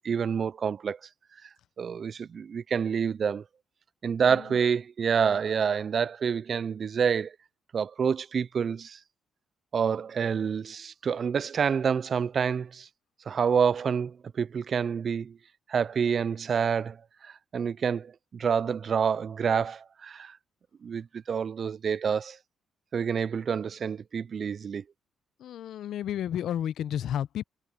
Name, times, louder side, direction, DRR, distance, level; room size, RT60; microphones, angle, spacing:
voice 1, 0.0-1.0 1.8-3.4 4.0-7.4 7.7-9.0 9.7-12.9 13.3-15.4 15.7-17.0 17.2-20.4 20.8-22.4 22.9-24.8, right 6 dB, 50° right, 0.3 m, -28 dB
voice 2, 4.2-4.6 25.4-27.4, left 10 dB, 75° left, 0.6 m, -32 dB
cardioid pair, 90°, 0 cm